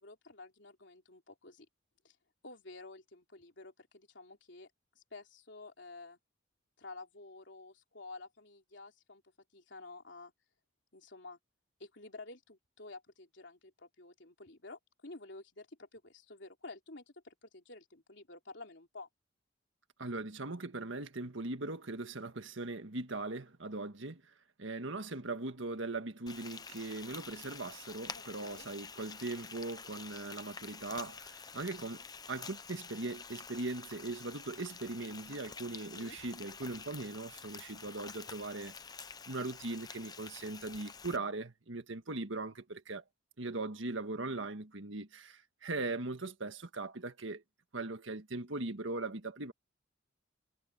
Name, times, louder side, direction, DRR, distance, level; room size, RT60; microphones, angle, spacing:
voice 1, 0.0-1.7 2.0-2.2 2.4-4.7 5.0-6.2 6.8-9.2 9.5-10.3 10.9-11.4 11.8-19.1 28.1-28.7 35.9-36.2, left 3 dB, 65° left, 3.5 m, -51 dB
voice 2, 20.0-24.2 24.6-32.0 32.3-38.7 39.3-43.0 43.4-47.4 47.7-49.5, right 2 dB, 75° right, 1.7 m, -40 dB
Frying (food), 26.3-41.2, left 5 dB, 20° left, 0.7 m, -48 dB
head